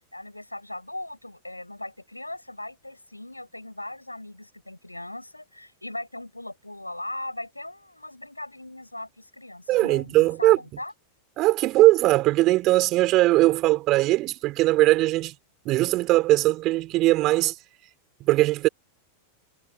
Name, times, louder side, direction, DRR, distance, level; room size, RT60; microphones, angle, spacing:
voice 1, 0.1-10.9, left 1 dB, 85° left, 6.2 m, -39 dB
voice 2, 9.7-10.6 11.4-15.3 15.6-17.5 18.2-18.7, right 18 dB, 40° right, 6.7 m, -20 dB
figure-of-eight pair, 90°, 0 cm